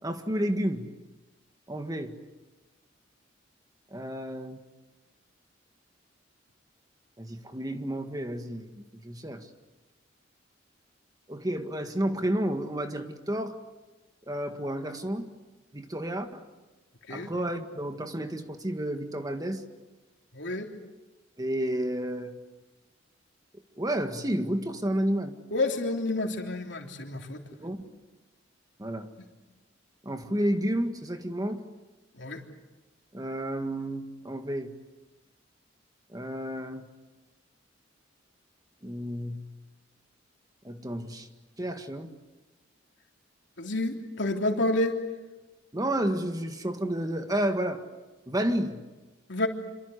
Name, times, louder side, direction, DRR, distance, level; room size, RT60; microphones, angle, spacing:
voice 1, 0.0-0.9 1.7-2.2 3.9-4.6 7.2-8.7 9.0-9.5 11.3-13.6 14.3-15.3 15.7-16.4 17.1-19.6 21.4-22.4 23.8-25.3 27.6-27.9 28.8-29.1 30.0-31.6 33.1-34.7 36.1-36.9 38.8-39.5 40.6-41.3 41.6-42.1 45.7-47.8 48.3-48.8, right 1 dB, 20° right, 6 dB, 1.9 m, -31 dB
voice 2, 20.3-20.7 25.5-27.4 32.2-32.4 43.6-45.0 49.3-49.5, left 2 dB, 70° left, 2 dB, 3.5 m, -29 dB
27.0 x 26.0 x 8.2 m, 1.2 s
head